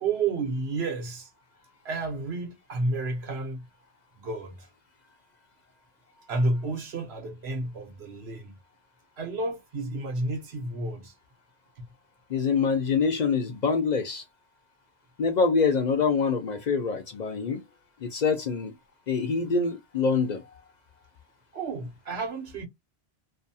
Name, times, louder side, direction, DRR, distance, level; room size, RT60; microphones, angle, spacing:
voice 1, 0.0-1.3 1.8-3.6 4.2-4.7 6.3-8.6 9.2-11.1 11.8-11.9 21.5-22.7, right 3 dB, 80° right, 1.1 m, -31 dB
voice 2, 12.3-14.2 15.2-17.6 18.0-18.7 19.1-20.4, left 5 dB, 55° left, 0.6 m, -25 dB
2.6 x 2.2 x 2.6 m
omnidirectional pair, 1.1 m